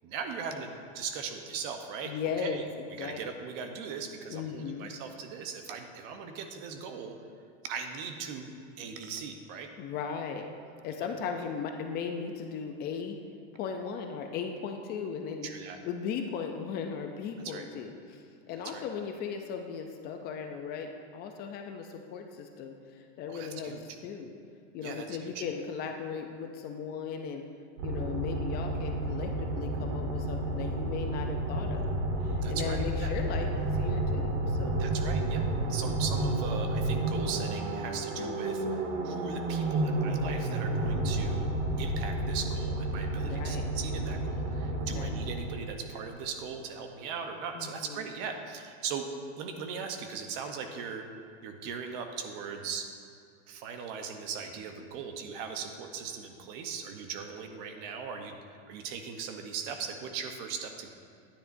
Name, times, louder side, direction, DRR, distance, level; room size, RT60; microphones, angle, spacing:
voice 1, 0.0-7.1 7.6-8.5 8.8-9.7 15.4-15.8 17.4-17.6 18.6-18.8 23.3-23.8 24.8-25.4 32.4-33.2 34.8-35.4 35.7-41.5 41.8-49.1 49.4-51.0 51.4-52.9 53.5-60.9, right 6 dB, 45° right, 5 dB, 0.9 m, -39 dB
voice 2, 2.0-3.2 4.3-4.9 9.8-10.5 10.8-13.2 13.5-15.5 15.8-23.8 24.0-24.3 24.7-27.4 27.8-31.9 32.2-34.8 40.7-41.2 43.2-43.7 44.7-45.1 47.5-48.0, left 6 dB, 30° left, 4 dB, 0.5 m, -37 dB
sound 1, 27.8-45.8, right 1 dB, 70° right, 1.6 m, -31 dB
12.5 x 10.0 x 2.7 m, 2.4 s
supercardioid pair, 155°, 34 cm